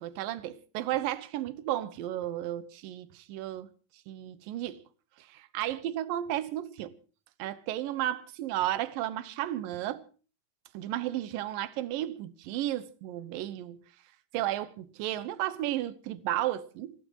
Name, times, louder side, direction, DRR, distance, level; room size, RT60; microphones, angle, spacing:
voice 1, 0.0-3.7 4.1-4.8 5.2-7.0 7.4-10.0 10.7-13.8 14.3-16.9, right 13 dB, 85° right, 2.7 m, -33 dB
27.0 x 16.0 x 2.9 m
omnidirectional pair, 3.9 m